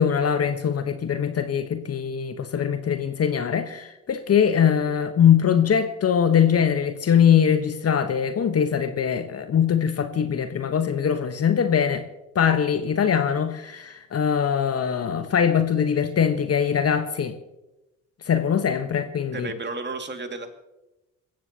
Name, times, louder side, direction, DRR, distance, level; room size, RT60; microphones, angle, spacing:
voice 1, 0.0-12.0 12.3-17.3 18.3-19.5, left 8 dB, 35° left, 1.3 m, -22 dB
voice 2, 19.3-20.5, right 3 dB, 25° right, 2.4 m, -32 dB
26.0 x 15.0 x 3.0 m
figure-of-eight pair, 50°, 40 cm